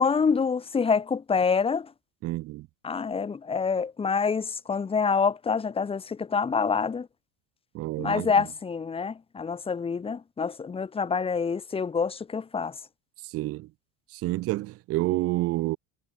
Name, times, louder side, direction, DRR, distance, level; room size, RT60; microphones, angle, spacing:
voice 1, 0.0-1.9 2.8-7.1 8.0-12.8, left 5 dB, 15° left, 1.0 m, -26 dB
voice 2, 2.2-2.7 7.7-8.5 13.2-13.7 14.1-15.8, right 18 dB, 35° right, 0.5 m, -29 dB
supercardioid pair, 135°, 40 cm